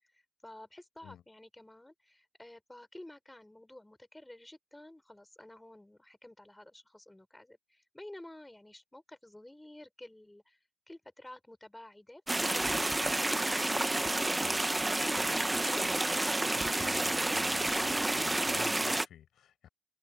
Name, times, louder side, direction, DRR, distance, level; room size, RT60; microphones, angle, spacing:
voice 1, 0.1-13.4 15.3-15.6, left 1 dB, 10° left, 6.0 m, -52 dB
sound 1, 12.3-19.0, right 2 dB, 10° right, 0.9 m, -30 dB
voice 2, 15.0-19.7, left 10 dB, 85° left, 7.3 m, -52 dB
open air
wide cardioid pair, 135°, 0 cm